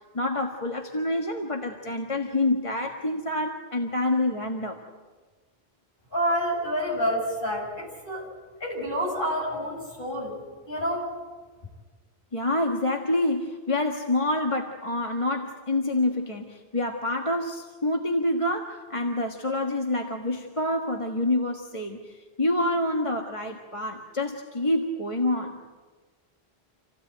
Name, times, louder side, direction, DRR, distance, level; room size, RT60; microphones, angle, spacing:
voice 1, 0.1-4.8 12.3-25.6, left 1 dB, 30° left, 2 dB, 1.6 m, -27 dB
voice 2, 6.1-8.2 8.6-10.4 10.7-11.1, equal, 55° left, -2 dB, 7.7 m, -28 dB
28.0 x 16.5 x 9.1 m, 1.3 s
omnidirectional pair, 1.0 m